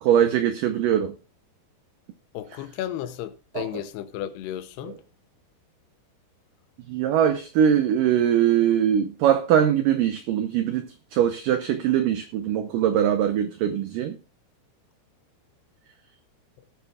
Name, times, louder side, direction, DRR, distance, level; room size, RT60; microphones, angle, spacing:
voice 1, 0.0-1.1 3.6-3.7 4.8-4.9 6.9-14.2, right 9 dB, 85° right, 1.9 m, -22 dB
voice 2, 2.3-5.0, left 12 dB, 80° left, 2.7 m, -33 dB
18.0 x 8.7 x 2.3 m
omnidirectional pair, 4.9 m